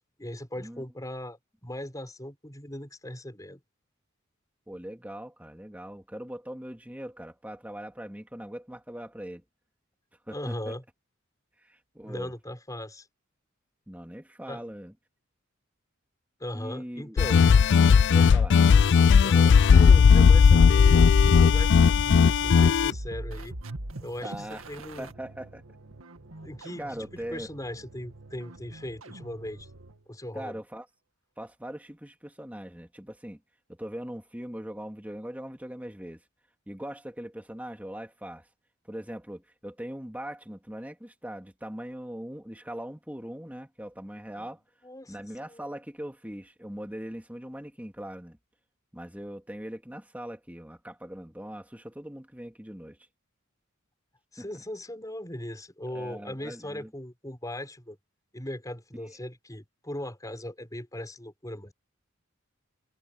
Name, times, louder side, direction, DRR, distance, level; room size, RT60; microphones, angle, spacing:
voice 1, 0.2-3.6 10.3-10.8 12.0-13.1 14.5-14.6 16.4-17.4 18.9-23.6 24.0-25.1 26.4-27.0 27.3-29.7 30.1-30.6 44.3-45.2 45.5-45.6 54.3-58.0 58.3-61.7, left 1 dB, 15° left, 5.3 m, -39 dB
voice 2, 4.7-9.4 10.3-10.8 11.6-12.3 13.9-14.9 16.5-17.2 18.1-18.6 24.2-25.6 26.8-27.5 30.3-30.9 31.4-33.4 33.7-36.2 36.7-38.5 38.9-44.6 45.1-48.4 48.9-53.0 54.4-54.5 55.9-56.9, equal, 5° right, 2.3 m, -40 dB
sound 1, 17.2-22.9, left 6 dB, 60° left, 0.4 m, -17 dB
sound 2, 20.3-30.0, right 1 dB, 75° right, 2.1 m, -41 dB
head